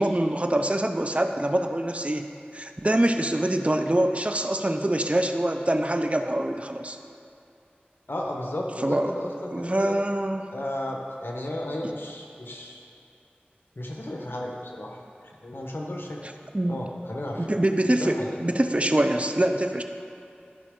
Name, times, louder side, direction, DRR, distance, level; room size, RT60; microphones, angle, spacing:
voice 1, 0.0-2.3 2.5-7.0 8.8-10.5 16.5-16.8 17.4-19.8, right 1 dB, 35° right, 6 dB, 0.5 m, -24 dB
voice 2, 8.1-10.0 10.5-12.8 13.8-15.0 15.4-16.2 16.7-17.5 17.8-18.4, left 1 dB, 75° left, -1 dB, 1.1 m, -33 dB
13.5 x 5.1 x 3.7 m, 2.7 s
wide cardioid pair, 40°, 4 cm